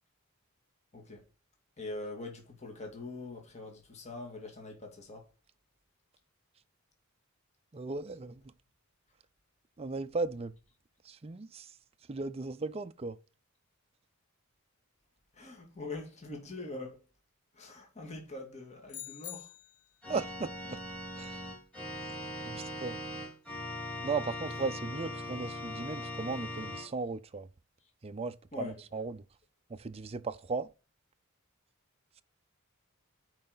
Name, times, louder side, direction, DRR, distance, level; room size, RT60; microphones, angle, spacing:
voice 1, 0.9-1.2 1.8-5.3 15.3-17.0 17.5-19.5 28.5-28.8, left 2 dB, 30° left, 2.0 m, -43 dB
voice 2, 7.7-8.4 9.8-10.5 11.0-11.8 12.1-13.2 20.1-20.8 21.2-21.4 22.4-23.0 24.0-27.5 28.0-29.2 29.7-30.7, right 4 dB, 30° right, 0.5 m, -36 dB
sound 1, 18.9-20.0, left 13 dB, 85° left, 0.9 m, -45 dB
Organ, 20.0-26.9, left 1 dB, 5° left, 3.6 m, -40 dB
9.4 x 4.8 x 3.9 m
head